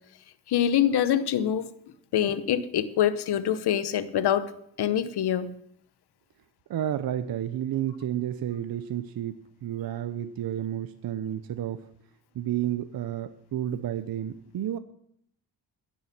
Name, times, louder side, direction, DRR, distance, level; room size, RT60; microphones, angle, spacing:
voice 1, 0.5-1.7 2.1-4.5 4.8-5.5, left 10 dB, 80° left, 0.9 m, -25 dB
voice 2, 6.7-9.4 9.6-11.8 12.3-14.8, right 11 dB, 65° right, 0.7 m, -31 dB
16.5 x 7.2 x 5.9 m
cardioid pair, 125°, 39 cm